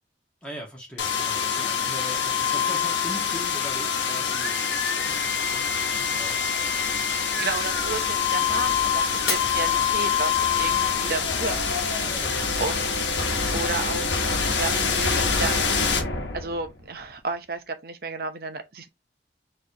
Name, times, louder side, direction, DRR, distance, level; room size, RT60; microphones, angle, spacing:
voice 1, 0.4-6.4 9.4-9.9 12.0-12.9, equal, 5° left, 1.7 m, -41 dB
sound 1, 1.0-16.8, left 6 dB, 85° left, 1.0 m, -25 dB
voice 2, 7.2-12.9 13.5-15.6 16.3-18.9, right 3 dB, 55° right, 0.8 m, -33 dB
Shatter, 9.3-10.5 11.1-11.5 12.1-12.2, left 6 dB, 60° left, 1.2 m, -32 dB
4.4 x 3.3 x 2.8 m
head